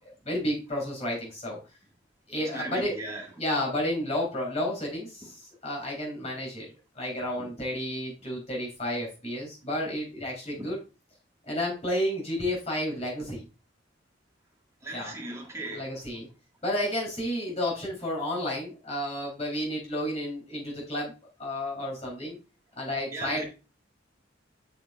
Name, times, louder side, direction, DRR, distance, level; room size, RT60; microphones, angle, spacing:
voice 1, 0.0-1.6 2.3-2.9 3.4-6.7 7.0-10.8 11.4-13.5 14.9-15.1 15.6-16.3 16.6-21.1 21.4-22.4 22.8-23.5, left 1 dB, 35° left, 3.9 m, -31 dB
voice 2, 2.5-3.3 7.4-7.5 10.6-10.7 14.8-15.8 23.1-23.4, right 2 dB, 15° right, 2.0 m, -37 dB
8.0 x 6.6 x 2.5 m
head